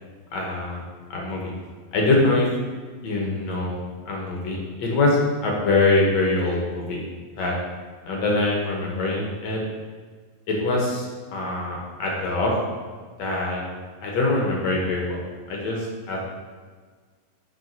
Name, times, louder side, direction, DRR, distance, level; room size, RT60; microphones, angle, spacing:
voice 1, 0.3-0.8 1.1-1.5 1.9-2.5 3.0-7.0 7.4-7.6 8.1-9.6 10.5-11.1 11.3-12.6 13.2-13.6 14.0-15.2 15.5-16.2, left 2 dB, 65° left, -2 dB, 1.8 m, -23 dB
7.8 x 3.4 x 5.3 m, 1.5 s
omnidirectional pair, 4.1 m